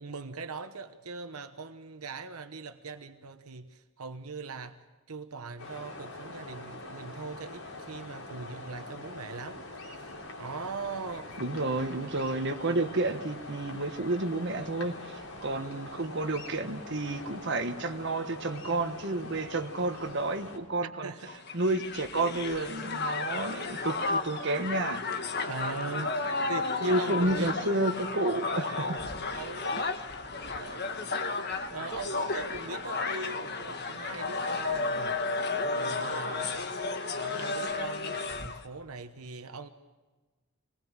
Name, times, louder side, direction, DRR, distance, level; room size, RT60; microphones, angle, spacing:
voice 1, 0.0-4.8 5.1-10.1 10.4-11.3 15.5-16.2 21.0-21.3 25.5-27.5 29.3-29.9 30.3-31.0 31.7-35.2 35.7-36.7 37.1-39.7, right 4 dB, 80° right, 8 dB, 1.1 m, -40 dB
sound 1, 5.6-20.6, left 2 dB, 75° left, 4.0 m, -44 dB
voice 2, 11.4-21.1 21.5-25.0 26.9-29.0, right 2 dB, 50° right, 6 dB, 1.4 m, -30 dB
Crowd, 21.3-38.6, left 3 dB, 45° left, 1.6 m, -33 dB
25.5 x 20.0 x 7.4 m, 1.3 s
head